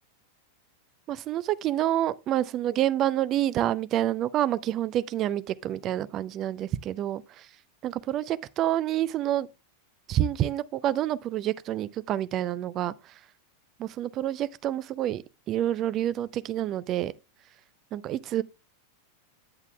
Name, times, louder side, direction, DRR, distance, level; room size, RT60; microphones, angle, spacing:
voice 1, 1.1-7.2 7.8-9.5 10.1-12.9 13.8-15.2 15.5-17.1 17.9-18.4, right 12 dB, 35° right, 0.4 m, -28 dB
9.7 x 8.0 x 2.3 m
figure-of-eight pair, 90°, 0 cm